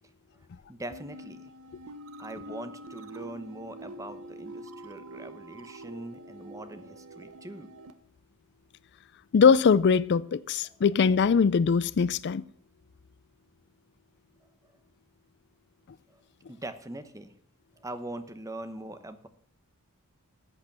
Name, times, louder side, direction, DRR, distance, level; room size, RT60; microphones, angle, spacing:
voice 1, 0.7-1.5 2.2-7.7 10.6-10.8 16.1-16.2 16.5-17.3 17.8-19.3, right 1 dB, 15° right, 1.0 m, -42 dB
sound 1, 0.9-7.9, right 1 dB, 65° right, 1.0 m, -45 dB
voice 2, 9.3-12.4, left 6 dB, 50° left, 0.4 m, -22 dB
14.0 x 8.2 x 6.0 m
head